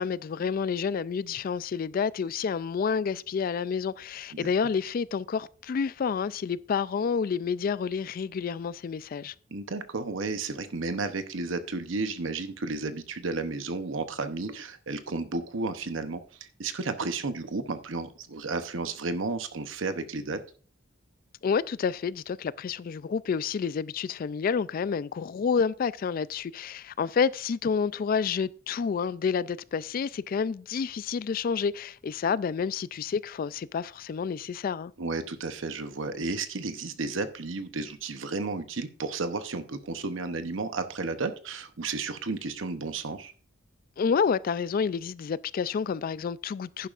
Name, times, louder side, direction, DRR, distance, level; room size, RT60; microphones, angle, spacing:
voice 1, 0.0-9.3 21.4-34.9 44.0-46.9, left 6 dB, 45° left, 0.3 m, -29 dB
voice 2, 9.5-20.4 35.0-43.3, right 3 dB, 70° right, 0.8 m, -33 dB
11.0 x 10.0 x 2.5 m
head